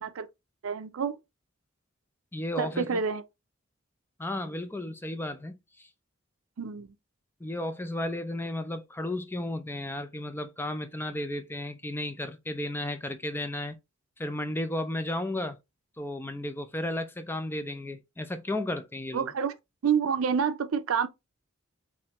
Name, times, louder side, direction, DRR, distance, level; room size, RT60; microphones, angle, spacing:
voice 1, 0.6-1.2 2.6-3.2 6.6-6.9 19.1-19.6 19.8-21.1, right 6 dB, 80° right, 0.5 m, -28 dB
voice 2, 2.3-3.0 4.2-5.9 7.4-13.8 14.2-15.6 16.0-19.3, left 1 dB, 10° left, 0.4 m, -34 dB
5.4 x 2.7 x 2.9 m
head